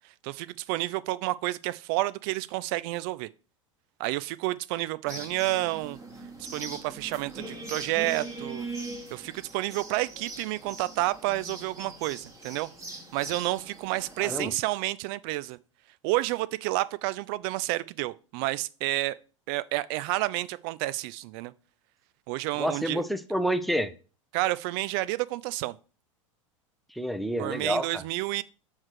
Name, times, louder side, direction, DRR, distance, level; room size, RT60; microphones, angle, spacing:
voice 1, 0.2-3.3 4.0-6.0 6.4-8.7 9.1-12.7 13.1-15.6 16.0-19.2 19.5-21.5 22.3-23.0 24.3-25.8 27.4-28.4, right 18 dB, 45° right, 0.4 m, -30 dB
sound 1, 5.1-14.5, right 2 dB, 15° right, 1.7 m, -41 dB
voice 2, 22.6-23.9 27.0-27.9, equal, ahead, 0.5 m, -28 dB
7.2 x 3.2 x 6.2 m
figure-of-eight pair, 90°, 17 cm